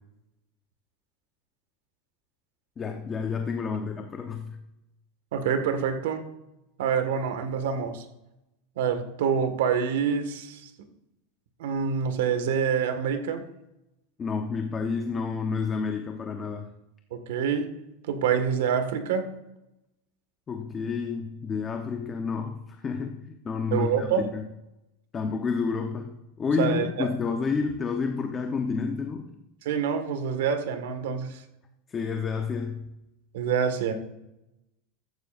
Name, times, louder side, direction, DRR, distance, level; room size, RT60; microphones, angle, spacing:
voice 1, 2.8-4.6 14.2-16.7 20.5-24.5 25.1-29.3 31.9-32.8, left 5 dB, 20° left, 4 dB, 0.9 m, -30 dB
voice 2, 5.3-6.2 6.8-8.0 8.8-10.7 11.6-13.4 17.1-17.7 18.1-19.3 23.7-24.3 26.6-27.1 29.6-31.4 33.3-33.9, right 7 dB, 80° right, 8 dB, 1.7 m, -26 dB
14.5 x 14.0 x 2.6 m, 0.92 s
supercardioid pair, 150°, 0 cm